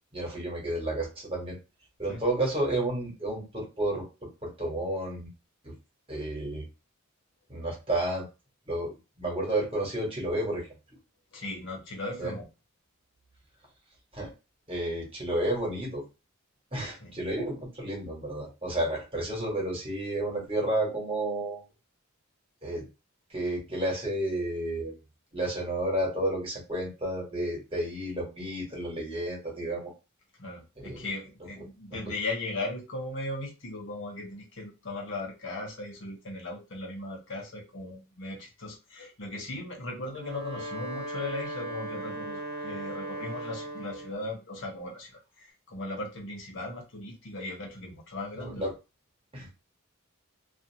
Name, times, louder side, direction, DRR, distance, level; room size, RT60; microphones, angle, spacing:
voice 1, 0.1-1.6 2.0-4.1 4.4-5.3 5.6-5.7 6.1-6.6 7.5-8.2 8.7-10.7 12.2-12.3 14.1-14.3 14.7-16.0 16.7-21.6 22.6-22.8 23.3-24.9 25.3-29.9 30.8-31.1 48.4-48.7 49.3-49.5, right 1 dB, 25° right, -3 dB, 1.2 m, -31 dB
voice 2, 11.3-12.5 16.8-17.2 30.4-48.6, left 2 dB, 60° left, -1 dB, 0.8 m, -38 dB
Wind instrument woodwind instrument, 40.0-44.3, right 1 dB, 45° right, 0.8 m, -37 dB
2.5 x 2.4 x 2.7 m, 0.27 s
head